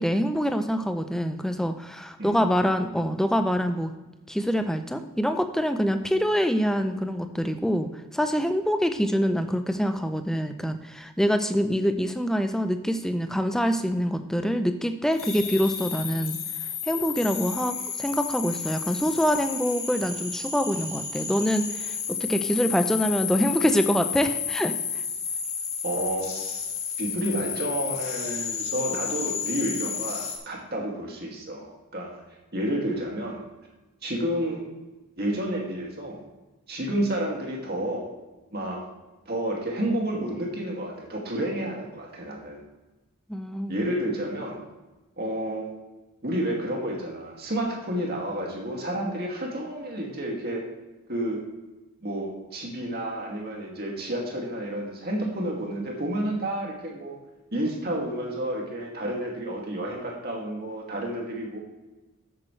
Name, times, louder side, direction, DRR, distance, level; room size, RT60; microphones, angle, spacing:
voice 1, 0.0-3.9 4.3-16.4 16.9-24.7 43.3-43.8, equal, ahead, 7 dB, 0.6 m, -25 dB
sound 1, 15.1-30.4, left 7 dB, 85° left, 2.0 m, -32 dB
voice 2, 25.8-26.3 27.0-32.1 32.5-33.4 34.0-34.7 35.2-36.2 36.7-38.1 38.5-38.8 39.3-42.6 43.7-44.6 45.2-45.6 46.2-50.6 51.1-51.4 52.0-57.2 57.5-61.6, right 1 dB, 45° right, -1 dB, 2.3 m, -30 dB
12.5 x 8.7 x 3.3 m, 1.1 s
head